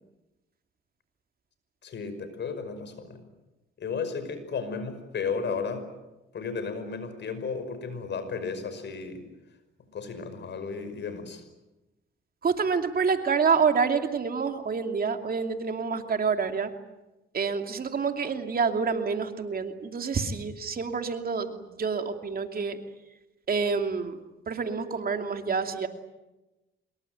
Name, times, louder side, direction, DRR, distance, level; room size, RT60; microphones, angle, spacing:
voice 1, 1.8-3.2 3.8-5.9 6.3-9.2 9.9-11.4, left 5 dB, 60° left, 10 dB, 5.5 m, -34 dB
voice 2, 12.4-16.7 17.3-22.8 23.5-24.2 24.5-25.9, right 5 dB, 45° right, 5 dB, 2.7 m, -27 dB
25.5 x 22.5 x 9.3 m, 1.0 s
cardioid pair, 90°, 21 cm